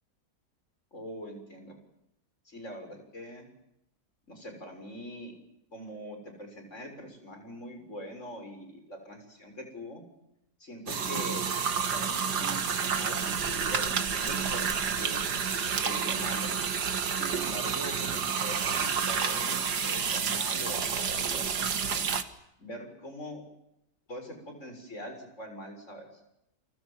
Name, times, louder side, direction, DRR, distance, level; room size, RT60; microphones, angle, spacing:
voice 1, 0.9-1.7 2.5-3.4 4.3-5.3 5.7-10.0 10.6-11.5 11.8-14.7 15.0-15.3 15.8-16.6 17.1-22.1 22.6-23.4 24.1-26.1, equal, 45° left, 5 dB, 7.1 m, -43 dB
sound 1, 10.9-22.2, right 6 dB, 85° right, 2.3 m, -29 dB
30.0 x 25.0 x 7.5 m, 0.81 s
omnidirectional pair, 1.7 m